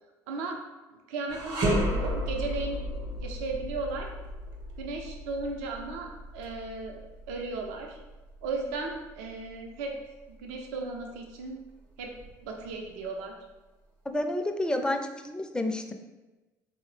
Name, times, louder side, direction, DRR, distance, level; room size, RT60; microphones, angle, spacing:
voice 1, 0.3-0.6 1.1-2.8 3.2-4.1 4.8-7.0 7.3-8.0 8.4-9.9 10.3-11.6 12.0-12.1 12.4-13.3, right 3 dB, 80° right, 2 dB, 0.4 m, -35 dB
sound 1, 1.3-10.6 11.0-11.2 12.0-12.9, equal, 60° right, 0.8 m, -34 dB
voice 2, 14.1-15.9, left 1 dB, 10° left, 5 dB, 0.4 m, -30 dB
3.7 x 2.0 x 3.1 m, 1.1 s
hypercardioid pair, 70°, 9 cm